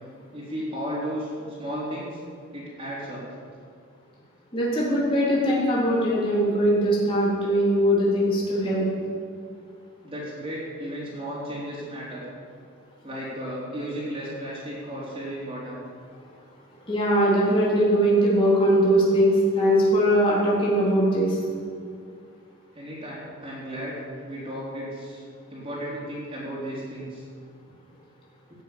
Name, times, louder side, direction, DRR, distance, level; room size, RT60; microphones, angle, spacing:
voice 1, 0.3-2.2 2.5-3.2 10.0-12.2 13.0-15.8 22.7-25.2 25.5-27.2, equal, 25° right, -7 dB, 3.7 m, -34 dB
voice 2, 4.5-8.8 16.9-21.4, equal, 25° left, -6 dB, 3.8 m, -21 dB
16.5 x 7.4 x 9.0 m, 2.1 s
head